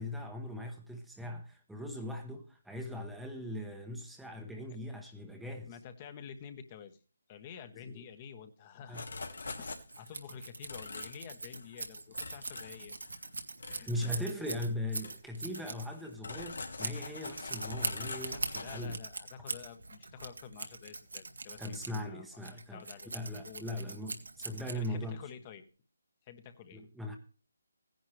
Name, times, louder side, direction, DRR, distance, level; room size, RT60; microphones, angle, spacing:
voice 1, 0.0-5.7 7.9-8.0 8.9-9.0 13.9-19.0 21.6-22.8 23.1-25.2 26.7-27.2, left 1 dB, ahead, 1.0 m, -39 dB
voice 2, 5.7-7.0 7.3-9.7 10.0-12.9 13.7-13.9 18.6-22.3 22.7-23.1 23.4-23.8 24.5-25.6 26.3-26.8, left 7 dB, 25° left, 1.2 m, -49 dB
sound 1, 8.9-10.2 10.7-11.2 11.5-11.8 12.1-13.3 13.6-14.7 15.0-15.2 15.5-18.9, left 3 dB, 75° left, 2.4 m, -44 dB
Scissors, 9.6-25.2, right 3 dB, 85° right, 1.9 m, -42 dB
16.0 x 10.5 x 3.3 m
figure-of-eight pair, 155°, 0 cm